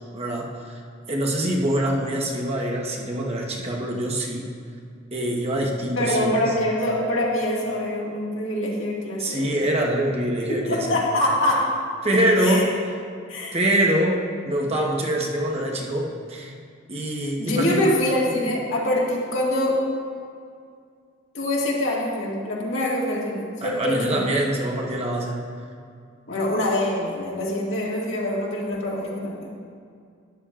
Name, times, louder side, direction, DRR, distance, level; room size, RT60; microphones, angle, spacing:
voice 1, 0.1-0.8 1.1-4.5 5.1-6.5 9.2-11.0 12.0-12.7 13.5-16.5 16.9-17.9 23.6-25.4, right 1 dB, 30° right, -1 dB, 1.1 m, -24 dB
voice 2, 6.0-9.6 10.5-11.7 12.4-12.7 13.3-13.6 17.4-19.8 21.3-24.3 26.3-29.5, left 1 dB, 65° left, -4 dB, 2.0 m, -24 dB
13.0 x 10.5 x 2.5 m, 2.2 s
head